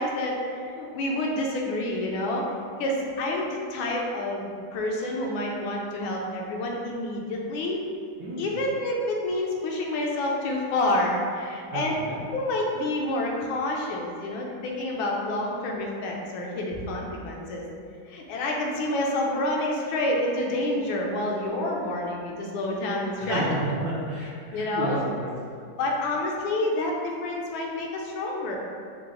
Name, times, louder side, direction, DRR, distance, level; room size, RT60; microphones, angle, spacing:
voice 1, 0.0-2.5 2.8-7.8 8.4-11.9 12.3-17.6 18.1-23.4 24.5-25.0 25.8-28.6, left 1 dB, 80° left, -1 dB, 1.3 m, -28 dB
voice 2, 11.7-12.2 23.1-25.3, right 2 dB, 75° right, -5 dB, 1.1 m, -31 dB
4.6 x 2.0 x 3.7 m, 2.3 s
omnidirectional pair, 2.3 m